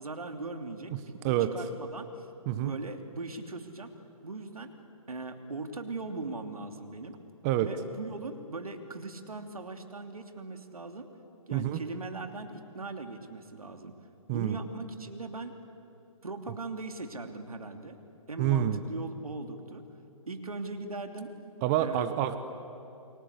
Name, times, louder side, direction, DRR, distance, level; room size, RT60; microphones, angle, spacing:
voice 1, 0.0-2.3 2.5-3.9 4.2-4.7 5.1-7.2 7.6-11.1 11.5-13.9 14.3-15.5 16.2-18.0 18.3-19.9 20.3-21.3 21.8-22.1, right 3 dB, 85° right, 6 dB, 2.9 m, -39 dB
voice 2, 18.4-18.8 21.6-22.4, right 12 dB, 30° right, 10 dB, 1.2 m, -27 dB
29.5 x 24.0 x 8.3 m, 2.8 s
hypercardioid pair, 140°, 18 cm